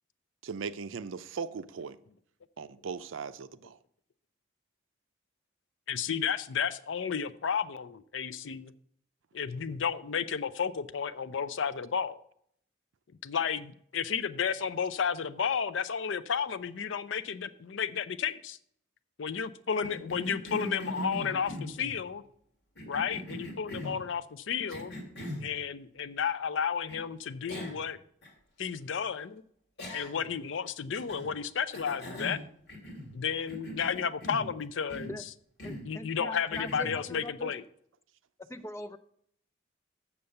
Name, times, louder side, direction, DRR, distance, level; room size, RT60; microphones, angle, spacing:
voice 1, 0.4-2.0 2.6-3.8, right 5 dB, 85° right, 0.5 m, -38 dB
voice 2, 5.9-8.7 9.3-12.2 13.2-18.6 19.2-22.2 22.9-25.0 25.4-28.0 28.6-29.4 29.9-32.4 33.1-35.2 35.6-37.6, left 7 dB, 75° left, 0.5 m, -32 dB
Cough, 19.8-22.0 22.8-24.0 24.7-25.5 26.9-27.0 27.5-27.9 28.2-28.3 29.8-30.3 30.9-31.3 31.7-33.2 33.5-34.5 34.9-35.2 35.6-35.9 36.5-37.0, equal, 55° left, 2.3 m, -40 dB
voice 3, 35.6-37.5 38.4-39.0, left 1 dB, 15° left, 0.4 m, -42 dB
7.1 x 6.8 x 6.6 m
head